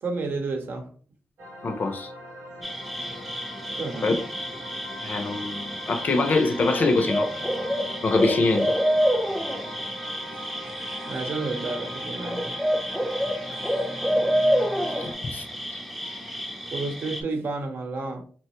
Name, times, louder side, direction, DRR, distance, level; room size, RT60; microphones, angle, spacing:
voice 1, 0.0-0.9 3.8-4.2 10.3-10.5 11.0-12.6 12.8-12.9 16.7-18.2, right 3 dB, 65° right, 0.7 m, -31 dB
sound 1, 1.4-15.1, equal, 85° right, 1.0 m, -40 dB
voice 2, 1.6-2.1 4.0-4.2 5.0-7.3 8.0-8.7 15.0-15.4 15.7-15.8, left 3 dB, 50° left, 0.5 m, -24 dB
sound 2, 2.6-17.2, equal, ahead, 0.5 m, -28 dB
2.9 x 2.2 x 2.9 m
cardioid pair, 70°, 4 cm